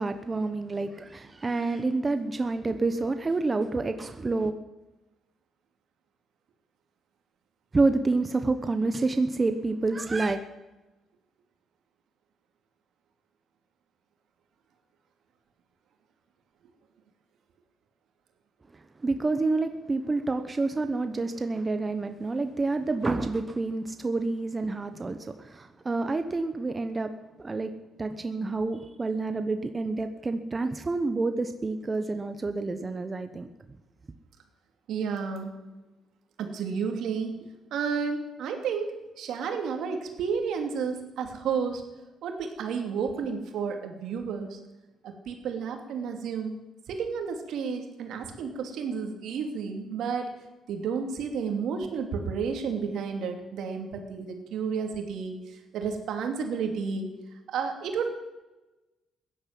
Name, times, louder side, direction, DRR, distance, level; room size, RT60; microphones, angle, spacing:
voice 1, 0.0-4.5 7.7-10.4 19.0-27.1 27.4-27.7 28.0-33.5, right 3 dB, 25° right, 8 dB, 1.0 m, -28 dB
voice 2, 34.9-35.6 36.4-37.4 37.7-41.8 42.2-44.6 45.0-46.6 46.9-50.3 50.7-57.1 57.5-58.1, right 6 dB, 80° right, 4 dB, 2.7 m, -31 dB
16.0 x 11.0 x 7.7 m, 1.1 s
cardioid pair, 90°, 0 cm